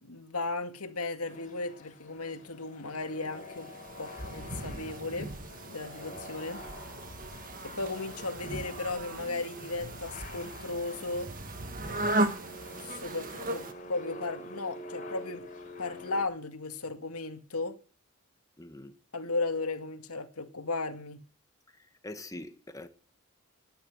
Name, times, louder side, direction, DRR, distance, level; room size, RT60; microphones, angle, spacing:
voice 1, 0.0-3.7 4.0-5.3 5.7-6.7 7.6-11.3 12.8-15.5 15.8-17.8 19.1-21.2, left 3 dB, 90° left, 2.2 m, -35 dB
sound 1, 1.2-16.2, left 1 dB, 35° left, 4.6 m, -47 dB
sound 2, 3.1-13.7, right 2 dB, 40° right, 1.7 m, -37 dB
voice 2, 18.6-18.9 21.7-22.9, left 1 dB, 15° left, 1.6 m, -44 dB
19.0 x 10.5 x 6.4 m
head